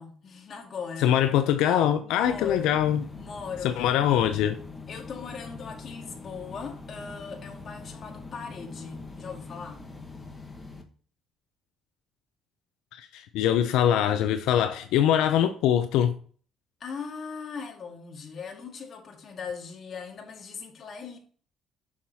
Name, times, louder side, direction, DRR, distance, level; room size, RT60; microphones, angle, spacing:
voice 1, 0.0-1.2 1.6-2.8 3.1-3.8 4.9-9.8 16.8-21.2, left 5 dB, 40° left, 1.9 m, -39 dB
voice 2, 1.0-3.0 3.6-4.6 12.9-16.1, left 10 dB, 90° left, 0.6 m, -23 dB
sound 1, 2.2-10.8, left 3 dB, 15° left, 1.2 m, -43 dB
7.1 x 6.4 x 2.8 m
cardioid pair, 135°, 0 cm